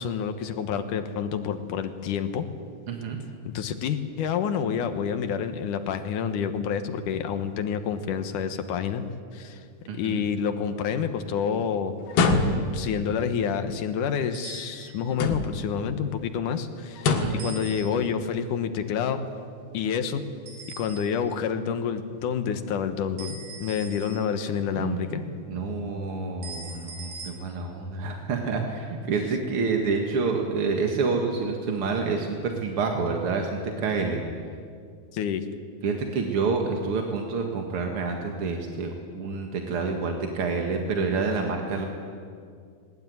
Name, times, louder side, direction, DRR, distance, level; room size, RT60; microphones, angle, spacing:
voice 1, 0.0-2.5 3.5-9.0 9.3-9.6 9.9-11.9 12.7-19.2 19.7-20.2 20.8-25.2 35.1-35.5, left 7 dB, 65° left, 8 dB, 2.3 m, -28 dB
voice 2, 2.9-3.2 9.9-10.2 17.2-17.5 24.8-34.2 35.8-41.9, right 4 dB, 50° right, 2 dB, 1.9 m, -28 dB
sound 1, 12.1-12.9 15.1-15.7 17.0-17.5, left 3 dB, 85° left, 3.6 m, -24 dB
sound 2, 14.3-15.1 17.4-18.3 20.5-21.4 23.2-24.6 26.4-27.3, right 4 dB, 80° right, 5.5 m, -42 dB
20.0 x 19.5 x 9.5 m, 2.2 s
omnidirectional pair, 4.5 m